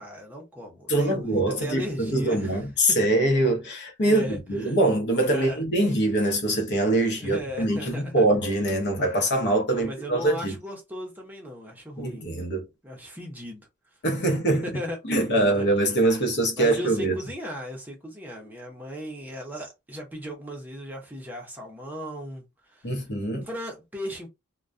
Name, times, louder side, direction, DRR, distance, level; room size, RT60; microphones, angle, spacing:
voice 1, 0.0-3.0 4.0-4.8 5.2-5.6 7.0-8.2 9.7-12.3 12.8-13.7 14.6-15.7 16.0-16.1 16.6-22.4 22.7-22.9 23.4-24.3, equal, 10° right, 0.7 m, -37 dB
voice 2, 0.9-10.6 12.0-12.6 14.0-14.7 15.0-17.1 22.8-23.4, right 1 dB, 50° left, 0.8 m, -23 dB
2.2 x 2.2 x 2.5 m
head